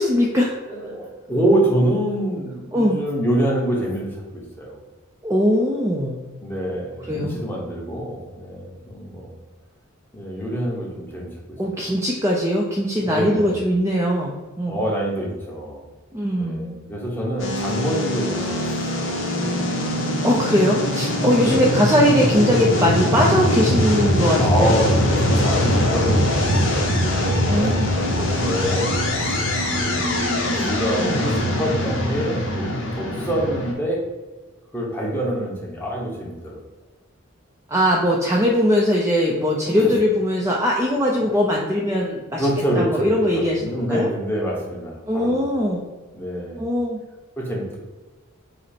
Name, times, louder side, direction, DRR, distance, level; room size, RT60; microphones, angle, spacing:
voice 1, 0.0-0.5 2.7-3.0 5.2-6.3 7.1-7.4 11.6-14.8 16.1-16.8 20.2-24.8 27.5-27.9 37.7-42.5 42.8-44.1 45.1-45.9 46.6-47.0, equal, 15° right, -3 dB, 0.4 m, -20 dB
voice 2, 0.7-4.8 6.4-9.3 10.1-11.8 13.0-13.6 14.6-15.9 16.3-18.9 21.4-21.6 24.4-25.0 25.3-27.8 28.1-28.9 29.2-29.3 29.8-34.0 34.7-36.6 39.8-39.9 42.4-43.1 43.3-45.5 46.1-46.8 47.4-47.8, equal, 10° left, -3 dB, 0.9 m, -26 dB
sound 1, 17.4-33.7, left 1 dB, 60° left, 0.9 m, -22 dB
5.1 x 2.0 x 4.2 m, 1.2 s
head